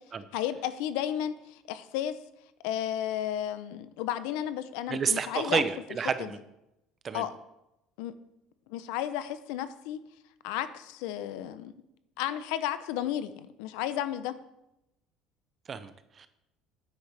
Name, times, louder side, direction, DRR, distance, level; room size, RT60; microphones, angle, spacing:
voice 1, 0.3-2.2 2.6-5.6 6.2-6.3 7.1-7.3 8.0-8.2 8.7-10.0 10.4-11.7 12.2-14.3, left 11 dB, 90° left, 13 dB, 0.6 m, -33 dB
voice 2, 4.9-6.4 7.0-7.2 15.7-16.3, right 6 dB, 25° right, 12 dB, 0.6 m, -30 dB
10.0 x 8.4 x 3.4 m, 0.87 s
cardioid pair, 165°, 0 cm